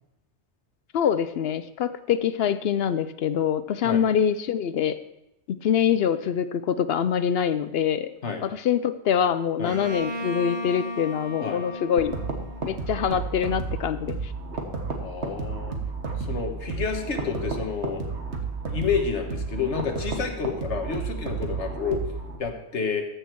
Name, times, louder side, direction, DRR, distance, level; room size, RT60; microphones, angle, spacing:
voice 1, 0.9-5.0 5.5-8.1 8.4-12.2 12.6-14.3, left 8 dB, 65° left, 13 dB, 0.7 m, -24 dB
Bowed string instrument, 9.7-13.4, left 1 dB, 25° right, 1.0 m, -36 dB
sound 1, 12.0-22.4, right 4 dB, 75° right, 1.7 m, -32 dB
voice 2, 15.0-15.8 16.2-18.1 18.6-22.0 22.4-23.0, left 6 dB, 85° left, 4 dB, 1.6 m, -29 dB
14.5 x 6.6 x 4.6 m, 0.85 s
omnidirectional pair, 1.2 m